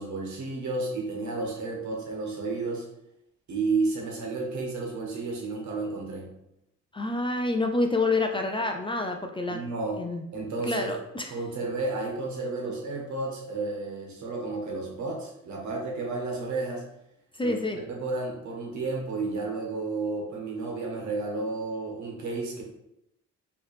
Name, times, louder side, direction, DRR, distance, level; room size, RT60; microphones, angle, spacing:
voice 1, 0.0-2.9 3.5-6.3 9.5-10.0 10.3-10.9 11.3-16.8 17.4-22.6, right 3 dB, 70° right, 0 dB, 1.4 m, -32 dB
voice 2, 6.9-9.6 10.0-10.2 10.6-11.3 17.3-17.8, left 2 dB, 15° left, 4 dB, 0.4 m, -28 dB
4.5 x 3.2 x 3.3 m, 0.82 s
cardioid pair, 90°, 30 cm